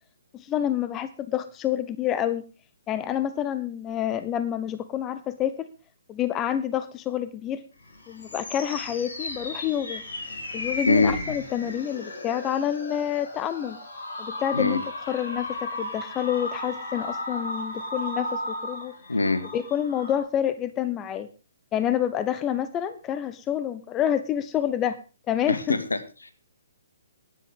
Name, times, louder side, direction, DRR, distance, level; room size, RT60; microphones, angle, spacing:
voice 1, 0.3-2.4 2.9-5.7 6.1-7.6 8.1-10.0 10.5-13.8 14.2-14.8 15.1-18.9 19.5-21.3 21.7-25.0 25.3-25.8, left 10 dB, 20° left, 12 dB, 0.7 m, -28 dB
sound 1, 7.8-20.2, left 1 dB, 55° left, 5.3 m, -35 dB
voice 2, 10.9-11.2 14.5-14.8 19.1-19.4 25.5-26.3, left 3 dB, 75° left, 9 dB, 1.8 m, -23 dB
16.0 x 11.0 x 3.7 m, 0.32 s
figure-of-eight pair, 130°, 0 cm